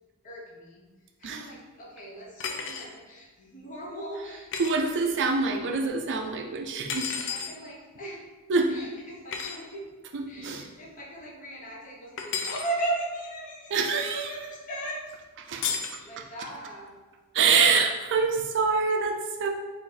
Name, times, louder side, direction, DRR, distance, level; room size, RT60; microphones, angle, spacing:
voice 1, 0.2-0.9 1.2-5.7 7.1-8.2 8.7-10.0 10.3-15.0 16.0-17.0, right 2 dB, 35° left, -3 dB, 0.9 m, -37 dB
sound 1, 2.4-2.9 4.5-4.8 6.9-7.5 9.3-9.6 12.2-12.7 15.6-16.0, left 6 dB, 55° left, 0.5 m, -32 dB
voice 2, 4.6-7.1 8.5-8.8 10.1-10.7 13.7-14.3 15.5-15.7 17.3-19.5, right 4 dB, 55° right, 3 dB, 0.4 m, -25 dB
4.2 x 2.6 x 4.1 m, 1.2 s
head